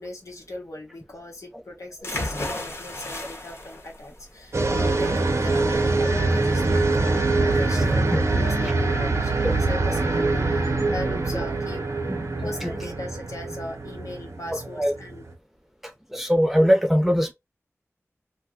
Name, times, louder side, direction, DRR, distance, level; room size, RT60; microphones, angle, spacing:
voice 1, 0.0-5.1 5.4-11.8 12.4-15.3, left 1 dB, 80° left, 1.2 m, -38 dB
sound 1, 2.0-9.7, left 1 dB, 55° left, 1.1 m, -36 dB
sound 2, 4.5-15.3, right 3 dB, 60° right, 0.7 m, -24 dB
voice 2, 16.1-17.3, equal, 5° right, 0.8 m, -21 dB
2.5 x 2.2 x 3.5 m
wide cardioid pair, 55°, 5 cm